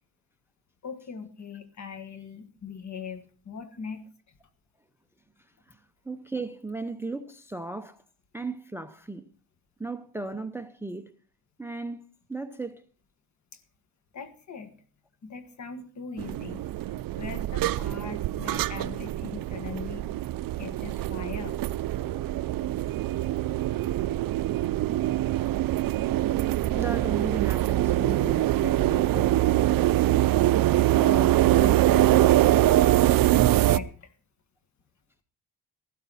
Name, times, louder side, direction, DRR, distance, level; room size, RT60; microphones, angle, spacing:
voice 1, 0.8-4.0 14.1-14.7 15.2-16.6 17.1-20.1 20.5-21.6 30.9-32.1 33.5-34.1, left 6 dB, 45° left, 1.7 m, -40 dB
voice 2, 5.7-8.0 8.3-9.3 9.8-11.1 11.6-12.0 12.3-12.8 22.1-22.4 26.7-29.4, right 3 dB, 5° right, 0.6 m, -36 dB
sound 1, 16.2-33.8, right 14 dB, 60° right, 0.5 m, -24 dB
14.5 x 12.5 x 4.1 m
cardioid pair, 140°, 38 cm